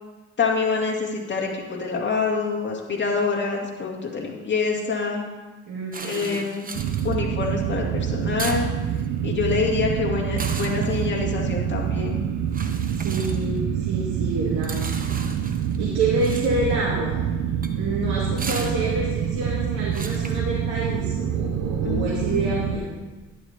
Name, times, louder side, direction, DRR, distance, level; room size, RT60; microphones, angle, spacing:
voice 1, 0.4-5.3 6.0-6.7 7.0-8.7 9.2-12.2 21.8-22.5, left 4 dB, 40° left, -2 dB, 2.4 m, -26 dB
voice 2, 5.7-6.4 12.6-14.9 15.8-17.2 17.8-22.9, right 2 dB, 85° right, -6 dB, 2.3 m, -28 dB
sound 1, 5.9-21.1, right 4 dB, 30° right, 0.9 m, -39 dB
sound 2, 6.7-22.8, right 8 dB, 65° right, 0.6 m, -26 dB
11.5 x 10.5 x 2.9 m, 1.2 s
cardioid pair, 90°, 30 cm